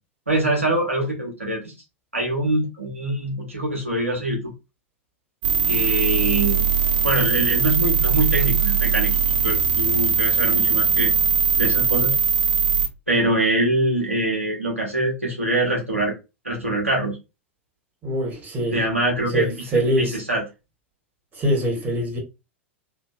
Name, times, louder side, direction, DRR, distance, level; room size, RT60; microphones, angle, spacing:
voice 1, 0.3-1.7 2.1-4.5 5.7-6.7 7.0-9.1 9.4-11.1 11.6-12.1 13.1-16.1 16.4-17.2 18.7-20.4, right 1 dB, 85° right, 1.0 m, -24 dB
sound 1, 5.4-12.9, right 6 dB, 50° right, 0.7 m, -20 dB
voice 2, 18.0-18.8 19.3-20.2 21.3-22.2, right 1 dB, 25° right, 1.4 m, -23 dB
2.7 x 2.7 x 2.4 m
figure-of-eight pair, 90°, 7 cm